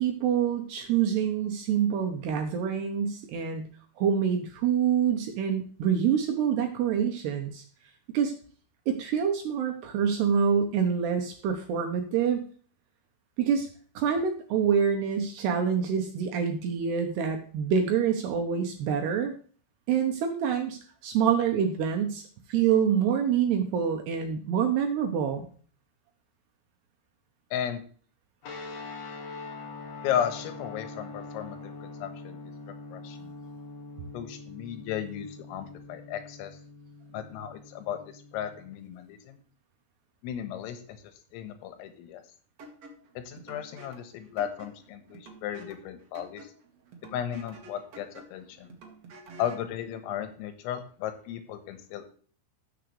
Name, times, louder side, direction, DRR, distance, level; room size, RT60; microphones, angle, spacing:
voice 1, 0.0-3.6 4.0-7.6 8.1-8.3 8.9-12.4 13.4-13.7 14.0-19.3 19.9-22.2 22.5-25.4, right 7 dB, 75° right, 4 dB, 2.6 m, -26 dB
sound 1, 28.4-38.8, left 3 dB, 55° left, 1.8 m, -43 dB
voice 2, 30.0-33.3 34.1-36.6 37.1-39.4 40.2-41.0 41.3-42.2 43.2-46.5 47.1-48.8 49.4-52.1, left 9 dB, 90° left, 9 dB, 4.0 m, -35 dB
sound 2, 42.6-49.7, right 2 dB, 60° right, 1.7 m, -50 dB
14.0 x 7.0 x 3.2 m, 0.43 s
omnidirectional pair, 5.8 m